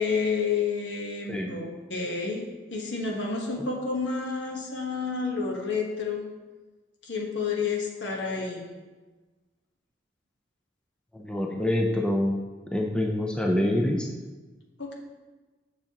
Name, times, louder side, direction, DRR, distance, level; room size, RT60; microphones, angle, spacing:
voice 1, 0.0-6.2 7.0-8.7 14.8-14.9, left 5 dB, 75° left, 0 dB, 1.2 m, -30 dB
voice 2, 11.1-12.3 12.7-14.1, left 1 dB, 5° left, 1 dB, 0.4 m, -26 dB
7.1 x 6.5 x 2.9 m, 1.3 s
head